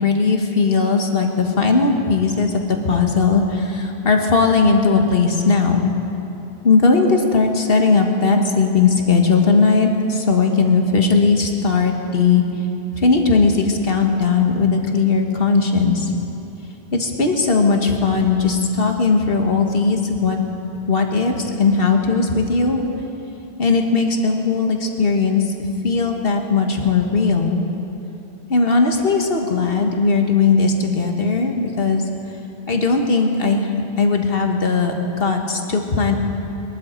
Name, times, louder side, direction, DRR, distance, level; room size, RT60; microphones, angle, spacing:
voice 1, 0.0-5.9 6.6-12.4 12.9-16.1 16.9-20.4 20.9-22.8 23.6-25.5 25.8-27.6 28.5-32.0 32.7-36.1, left 4 dB, 60° left, 3 dB, 1.5 m, -18 dB
22.0 x 12.5 x 4.4 m, 3.0 s
omnidirectional pair, 1.1 m